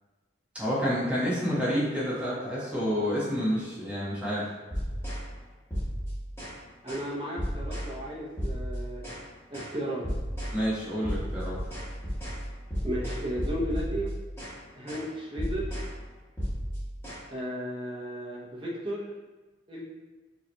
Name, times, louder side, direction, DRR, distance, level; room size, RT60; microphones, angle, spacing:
voice 1, 0.5-4.5 10.5-11.6, equal, 5° right, -8 dB, 1.0 m, -29 dB
sound 1, 4.7-5.3 5.7-6.6 6.9-7.1 7.4-7.9 8.4-9.2 9.5-9.8 10.0-10.6 11.0-14.6 14.9-15.1 15.4-15.9 16.4-17.2, equal, 15° left, 1.2 m, -33 dB
voice 2, 6.8-9.0 9.5-10.1 12.8-14.2 14.8-15.8 17.3-19.1 19.7-19.8, equal, 30° right, -4 dB, 0.7 m, -34 dB
5.3 x 2.8 x 2.2 m, 1.3 s
head